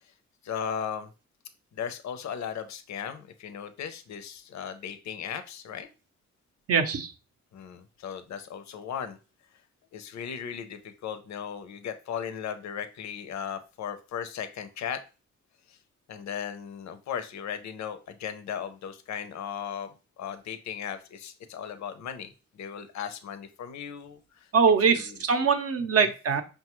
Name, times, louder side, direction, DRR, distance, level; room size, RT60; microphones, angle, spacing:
voice 1, 0.4-1.1 1.7-5.9 7.5-9.2 9.9-15.0 15.7-15.8 16.1-24.5 24.9-25.2 26.0-26.1, left 8 dB, 70° left, 9 dB, 0.6 m, -37 dB
voice 2, 6.7-7.1 24.5-26.4, right 5 dB, 55° right, 7 dB, 0.6 m, -23 dB
5.2 x 2.3 x 2.9 m, 0.33 s
cardioid pair, 95°, 29 cm